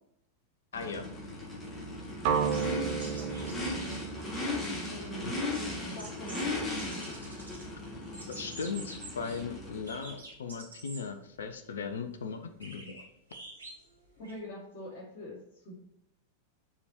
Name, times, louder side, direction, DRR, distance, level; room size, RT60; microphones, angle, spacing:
voice 1, 0.7-1.1 5.2-5.3 8.3-13.0, left 5 dB, 65° left, 8 dB, 0.7 m, -38 dB
Race car auto racing / Idling / Accelerating revving vroom, 0.7-10.2, left 2 dB, 15° left, 2.5 m, -37 dB
sound 1, 2.2-6.2, right 6 dB, 50° right, 1.1 m, -34 dB
sound 2, 2.3-4.0 4.2-4.3 4.5-6.5 6.8-7.7 8.0-9.4 9.9-11.0 11.5-11.6 12.6-14.4, right 2 dB, 75° right, 2.6 m, -48 dB
voice 2, 3.0-4.0 4.9-5.4 5.8-6.7 14.2-15.8, equal, 40° left, -9 dB, 3.0 m, -44 dB
7.0 x 5.0 x 4.5 m, 0.76 s
figure-of-eight pair, 90°, 0 cm